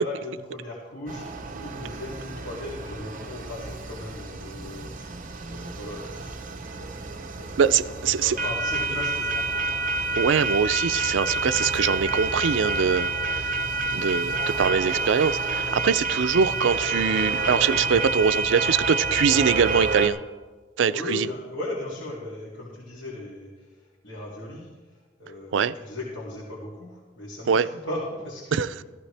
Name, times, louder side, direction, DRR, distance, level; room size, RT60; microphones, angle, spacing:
voice 1, 0.0-6.9 7.3-10.0 20.9-28.7, left 1 dB, 80° left, -6 dB, 2.6 m, -37 dB
sound 1, 1.1-20.1, right 3 dB, 45° right, 0.8 m, -28 dB
voice 2, 7.6-8.4 10.1-13.6 13.9-20.2 20.8-21.3 25.5-25.7 27.5-27.7 28.5-28.7, right 6 dB, 85° right, 15 dB, 0.4 m, -23 dB
14.5 x 14.5 x 3.3 m, 1.3 s
head